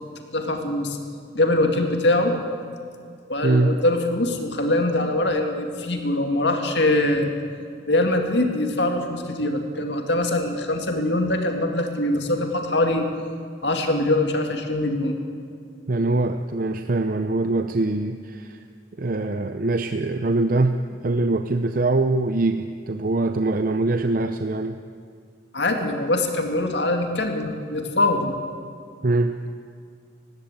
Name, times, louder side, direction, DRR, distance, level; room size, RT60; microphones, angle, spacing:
voice 1, 0.3-1.0 1.3-2.4 3.3-7.3 7.9-13.1 13.6-15.2 25.5-28.3, left 1 dB, 65° left, 4 dB, 2.3 m, -23 dB
voice 2, 3.4-3.8 15.9-18.6 19.0-20.8 21.0-24.8 29.0-29.4, right 2 dB, 45° right, 8 dB, 0.6 m, -23 dB
19.5 x 16.0 x 8.4 m, 2.2 s
head